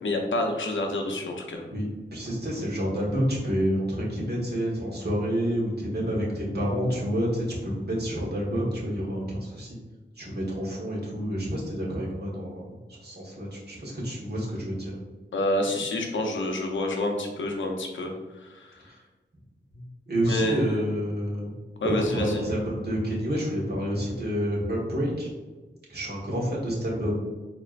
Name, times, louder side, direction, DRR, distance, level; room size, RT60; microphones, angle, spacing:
voice 1, 0.0-1.6 15.3-18.1 18.4-18.9 20.3-20.8 21.8-22.4, left 1 dB, 90° left, 2 dB, 0.7 m, -28 dB
voice 2, 1.7-9.8 10.2-14.9 19.7-21.5 21.8-25.3 25.9-27.1, equal, 60° right, -4 dB, 1.4 m, -29 dB
4.5 x 2.9 x 2.4 m, 1.3 s
wide cardioid pair, 65°, 19 cm